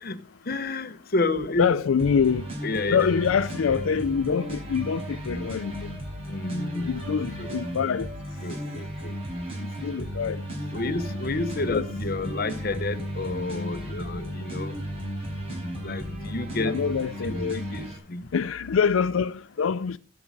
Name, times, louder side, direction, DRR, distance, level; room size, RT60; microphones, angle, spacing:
voice 1, 0.5-1.8 2.6-3.1 6.3-6.9 7.4-7.5 8.4-9.1 10.0-10.1 10.7-14.7 15.8-16.8 17.2-18.3, left 2 dB, 50° left, 0.9 m, -30 dB
voice 2, 1.6-2.5 2.9-6.0 6.9-8.1 9.6-10.4 11.7-11.9 12.2-12.3 16.6-17.6 18.3-20.0, left 6 dB, 90° left, 0.4 m, -25 dB
sound 1, 2.0-18.0, equal, 30° right, 4.6 m, -34 dB
12.5 x 7.8 x 5.3 m
head